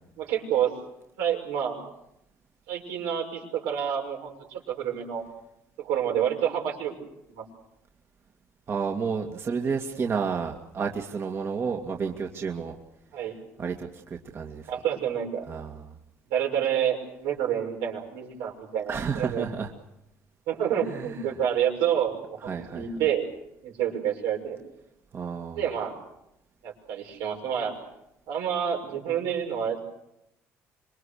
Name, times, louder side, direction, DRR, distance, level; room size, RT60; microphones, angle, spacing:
voice 1, 0.2-0.7 1.2-1.8 2.7-5.2 5.8-6.9 7.3-7.4 13.1-13.3 14.7-15.4 16.3-19.5 20.5-23.2 23.6-24.6 25.6-25.9 26.6-27.8 28.3-29.9, right 9 dB, 90° right, 1 dB, 6.3 m, -28 dB
voice 2, 8.7-12.8 13.6-14.7 15.5-15.8 18.9-19.7 20.9-21.1 22.5-22.9 25.1-25.6, right 5 dB, 45° right, 2 dB, 2.3 m, -31 dB
26.5 x 22.5 x 6.6 m, 0.84 s
supercardioid pair, 90°, 6 cm